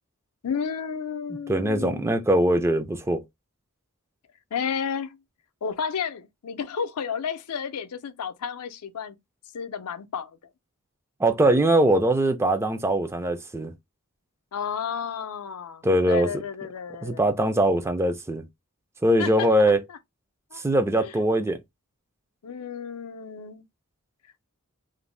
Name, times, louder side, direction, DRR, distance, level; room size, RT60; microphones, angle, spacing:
voice 1, 0.4-2.1 4.5-5.2 5.6-9.2 9.5-10.4 14.5-17.2 19.2-19.5 19.9-20.0 20.5-20.6 21.0-21.1 22.4-23.6, left 7 dB, 80° left, 0.5 m, -32 dB
voice 2, 1.3-3.2 11.2-13.7 15.8-16.3 17.0-18.4 19.0-19.8 20.5-21.6, right 1 dB, 10° right, 0.3 m, -22 dB
2.5 x 2.0 x 3.1 m
head